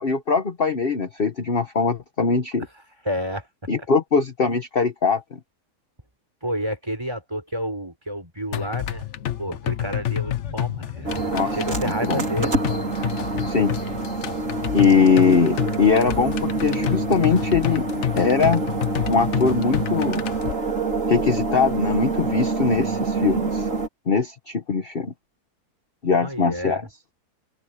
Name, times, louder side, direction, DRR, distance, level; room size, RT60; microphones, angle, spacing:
voice 1, 0.0-2.7 3.7-5.4 11.3-12.2 13.5-13.7 14.7-17.9 18.2-18.6 19.1-20.2 21.1-23.7 24.1-25.1 26.0-26.9, left 5 dB, 40° left, 1.3 m, -21 dB
voice 2, 3.0-3.5 3.8-3.9 6.4-9.1 9.4-12.5 22.6-23.4 26.2-26.8, equal, 15° right, 5.7 m, -30 dB
sound 1, 8.5-20.5, left 12 dB, 55° left, 0.9 m, -29 dB
sound 2, 11.0-23.9, right 3 dB, 50° right, 4.2 m, -26 dB
open air
omnidirectional pair, 1.7 m